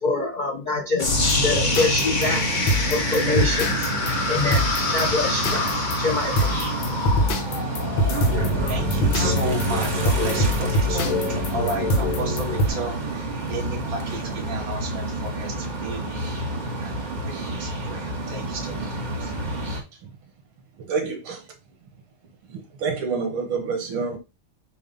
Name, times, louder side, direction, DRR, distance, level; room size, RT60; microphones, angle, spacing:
voice 1, 0.0-1.2 1.4-2.5 2.9-3.7 4.3-4.6 4.9-6.5, left 2 dB, 50° left, 0.5 m, -25 dB
sound 1, 1.0-12.7, equal, 70° left, 1.7 m, -25 dB
sound 2, 1.0-9.0, left 3 dB, 35° left, 0.9 m, -27 dB
sound 3, 1.0-19.8, right 1 dB, 25° right, 1.3 m, -30 dB
voice 2, 8.7-16.0 16.8-19.3, right 3 dB, 45° right, 2.3 m, -33 dB
voice 3, 19.4-20.1 20.8-21.5 21.8-21.9 22.5-24.2, right 5 dB, 80° right, 2.1 m, -29 dB
7.1 x 2.6 x 5.3 m
omnidirectional pair, 2.3 m